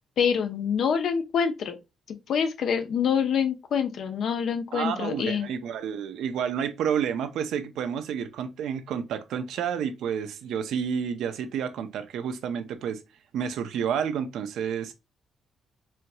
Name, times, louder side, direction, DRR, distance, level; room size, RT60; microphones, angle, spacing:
voice 1, 0.2-1.8 2.3-5.5, left 7 dB, 65° left, 0.7 m, -26 dB
voice 2, 4.7-13.0 13.3-14.9, right 8 dB, 80° right, 0.6 m, -30 dB
4.4 x 2.7 x 2.2 m
cardioid pair, 90°, 0 cm